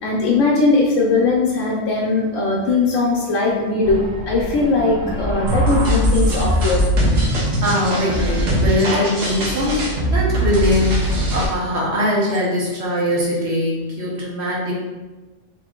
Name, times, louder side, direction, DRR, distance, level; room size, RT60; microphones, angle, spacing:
voice 1, 0.0-6.8 9.5-9.7, left 3 dB, 80° left, -3 dB, 1.0 m, -19 dB
sound 1, 3.8-6.7 7.0-9.1, right 1 dB, 45° right, 0.7 m, -30 dB
sound 2, 5.5-11.5, right 1 dB, 80° right, 1.2 m, -20 dB
voice 2, 7.6-14.7, left 1 dB, 60° right, -4 dB, 1.2 m, -21 dB
3.0 x 3.0 x 3.6 m, 1.2 s
omnidirectional pair, 1.3 m